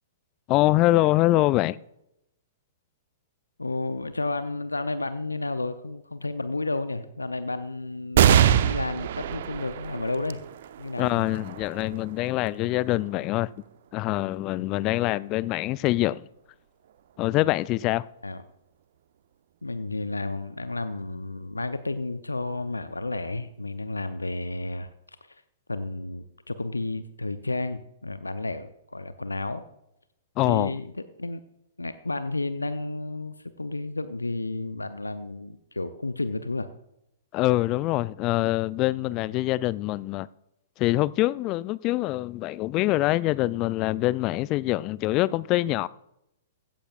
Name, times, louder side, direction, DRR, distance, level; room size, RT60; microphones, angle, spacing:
voice 1, 0.5-1.8 11.0-13.5 13.9-16.3 17.2-18.1 30.4-30.7 37.3-40.3 40.8-45.9, left 17 dB, 35° left, 0.4 m, -24 dB
voice 2, 3.6-10.4 10.8-11.3 18.2-18.4 19.6-25.2 25.7-29.6 30.5-30.9 31.2-31.4 31.8-36.7, left 2 dB, 85° left, 0.6 m, -32 dB
sound 1, 8.1-15.0 15.6-15.7 16.9-17.4, right 9 dB, 55° right, 0.7 m, -26 dB
16.0 x 14.0 x 2.4 m
figure-of-eight pair, 110°, 0 cm